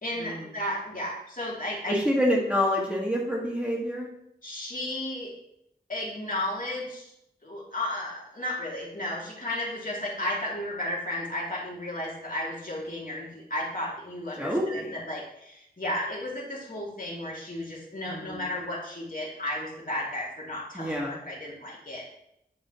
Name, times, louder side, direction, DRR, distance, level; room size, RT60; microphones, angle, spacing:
voice 1, 0.0-2.2 4.4-5.3 5.9-7.1 7.4-22.0, left 1 dB, 50° left, -4 dB, 2.6 m, -33 dB
voice 2, 1.9-4.1 14.4-14.9 18.1-18.4 20.7-21.2, equal, 5° right, -4 dB, 1.9 m, -27 dB
10.5 x 5.4 x 3.1 m, 0.79 s
wide cardioid pair, 55°, 18 cm